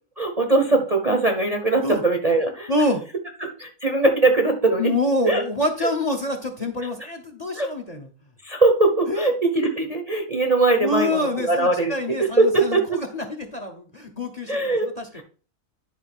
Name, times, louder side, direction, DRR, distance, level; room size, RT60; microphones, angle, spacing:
voice 1, 0.2-2.7 3.4-4.9 5.3-5.4 5.8-5.9 7.5-7.7 8.4-13.0 14.5-14.9 15.1-15.2, right 2 dB, 30° right, 4 dB, 0.8 m, -21 dB
voice 2, 2.7-3.0 4.8-8.1 9.1-9.3 10.8-15.2, left 1 dB, 30° left, 6 dB, 0.9 m, -26 dB
10.5 x 3.7 x 6.0 m, 0.39 s
omnidirectional pair, 1.6 m